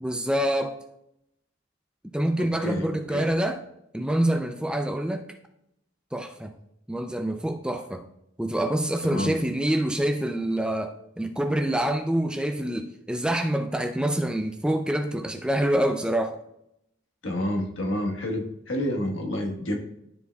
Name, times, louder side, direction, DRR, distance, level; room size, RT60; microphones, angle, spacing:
voice 1, 0.0-0.8 2.1-3.6 3.9-5.2 6.1-6.5 6.9-8.0 8.4-16.4, right 1 dB, 5° right, 5 dB, 0.4 m, -26 dB
voice 2, 2.4-3.3 9.0-9.3 17.2-19.8, left 1 dB, 80° left, 1 dB, 1.4 m, -29 dB
12.5 x 4.6 x 2.3 m, 0.79 s
head